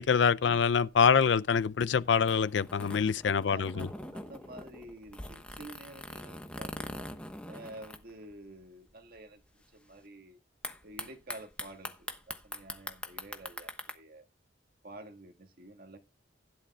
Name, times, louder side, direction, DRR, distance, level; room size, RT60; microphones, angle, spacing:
voice 1, 0.0-3.9, left 6 dB, 70° left, 0.5 m, -25 dB
sound 1, 0.6-8.6 8.9-9.0 9.2-9.6 10.6-13.9, left 1 dB, 5° left, 1.1 m, -43 dB
voice 2, 3.5-7.1 7.5-9.4 9.7-10.4 10.8-14.3 14.8-16.0, right 1 dB, 50° right, 1.7 m, -49 dB
16.0 x 11.0 x 2.3 m
head